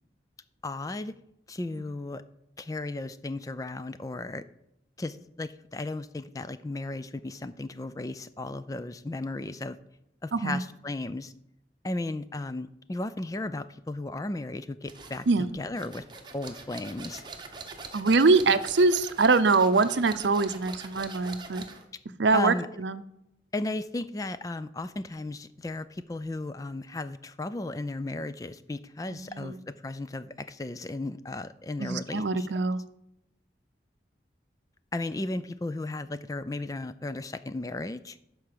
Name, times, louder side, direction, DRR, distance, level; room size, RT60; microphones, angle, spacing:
voice 1, 0.6-1.2 1.5-2.2 2.6-4.4 5.0-9.8 10.2-11.3 11.8-15.3 15.5-16.0 16.3-17.2 22.3-22.7 23.5-32.5 34.9-38.2, left 2 dB, 20° left, 13 dB, 0.4 m, -35 dB
sound 1, 14.9-21.9, right 4 dB, 25° right, 1.0 m, -44 dB
voice 2, 17.9-21.7 22.2-23.0 29.1-29.6 31.8-32.8, right 3 dB, 85° right, 13 dB, 0.6 m, -24 dB
11.5 x 4.7 x 6.8 m, 0.80 s
head